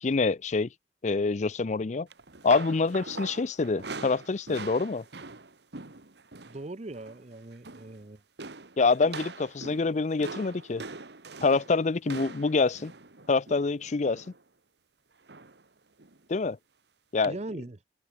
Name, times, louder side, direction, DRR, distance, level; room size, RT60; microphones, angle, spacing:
voice 1, 0.0-0.7 1.0-2.1 2.4-5.0 8.8-10.8 11.4-12.9 13.3-14.2 16.3-16.6 17.1-17.3, left 4 dB, 40° left, 0.5 m, -26 dB
sound 1, 2.1-6.6 6.9-7.2 7.5-8.0 8.4-14.4 15.3-15.6 16.0-16.2 17.2-17.3, right 3 dB, 65° right, 1.7 m, -43 dB
voice 2, 6.5-8.2 17.2-17.8, right 2 dB, 35° right, 0.7 m, -40 dB
head